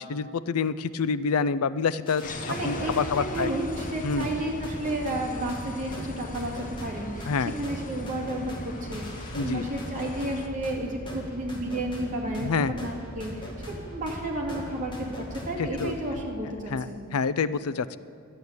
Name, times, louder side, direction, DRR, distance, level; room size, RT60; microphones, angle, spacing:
voice 1, 0.0-3.5 4.0-4.3 7.3-7.5 9.3-9.7 12.4-12.7 15.6-15.9 16.7-18.0, left 5 dB, 85° left, 15 dB, 0.5 m, -27 dB
sound 1, 2.1-16.2, equal, 20° left, 2.0 m, -40 dB
sound 2, 2.2-10.5, left 2 dB, 40° left, 0.9 m, -40 dB
voice 2, 2.5-17.1, right 1 dB, 40° right, -1 dB, 2.4 m, -32 dB
12.5 x 8.8 x 8.0 m, 2.3 s
head